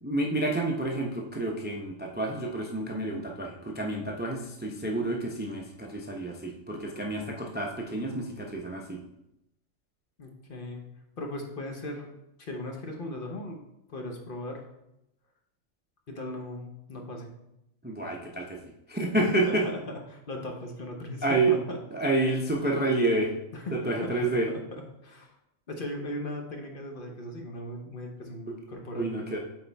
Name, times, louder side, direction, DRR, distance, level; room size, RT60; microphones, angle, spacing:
voice 1, 0.0-9.0 17.8-19.7 21.2-21.6 21.9-23.4 23.7-24.5 28.5-28.6 28.9-29.4, right 2 dB, 15° right, 0 dB, 0.3 m, -29 dB
voice 2, 10.2-10.8 11.2-12.1 12.4-13.6 13.9-14.7 16.1-17.3 19.2-21.8 23.5-25.3 25.7-29.1, left 1 dB, 45° left, 2 dB, 1.0 m, -38 dB
8.3 x 4.3 x 3.4 m, 0.86 s
omnidirectional pair, 1.4 m